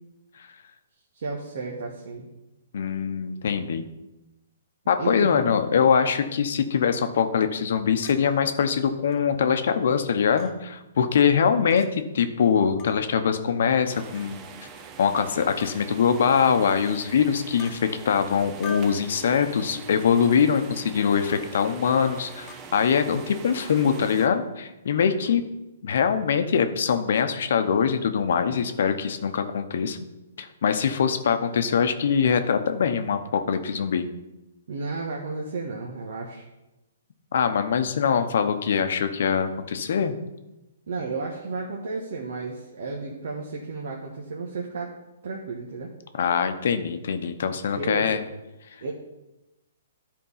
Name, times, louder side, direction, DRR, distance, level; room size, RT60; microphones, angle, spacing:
voice 1, 1.1-2.3 5.0-5.4 34.7-36.5 40.9-44.9 45.2-45.9 47.8-48.2 48.8-48.9, right 3 dB, 65° right, -2 dB, 1.4 m, -33 dB
voice 2, 2.7-3.8 4.9-14.4 15.0-25.4 25.8-30.0 30.4-34.1 37.3-40.1 46.1-48.2, left 7 dB, 65° left, 9 dB, 0.8 m, -23 dB
Chink clink, 8.0-8.2 9.1-9.2 10.4-10.5 11.7-11.9 12.8-13.0 14.1-14.4 15.6-15.8 16.8-17.0 17.6-17.8 18.6-19.0 20.2-20.3 21.3-21.5 22.5-22.6, left 6 dB, 30° left, 1.1 m, -43 dB
sound 1, 13.9-24.3, right 6 dB, 25° right, 0.8 m, -43 dB
10.5 x 4.6 x 5.6 m, 0.99 s
hypercardioid pair, 145°, 0 cm